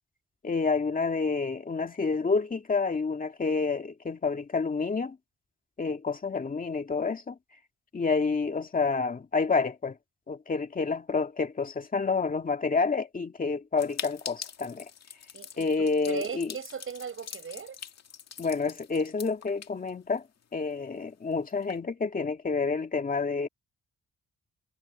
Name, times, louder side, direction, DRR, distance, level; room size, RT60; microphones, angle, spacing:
voice 1, 0.4-5.2 5.8-7.4 7.9-10.0 10.3-14.9 15.6-16.5 18.4-20.2 20.5-23.5, left 4 dB, 30° left, 2.2 m, -29 dB
sound 1, 13.8-20.4 20.7-20.8 21.0-21.1 21.5-21.8, left 8 dB, 60° left, 2.2 m, -43 dB
voice 2, 15.3-17.8, right 7 dB, 45° right, 7.4 m, -38 dB
wide cardioid pair, 155°, 29 cm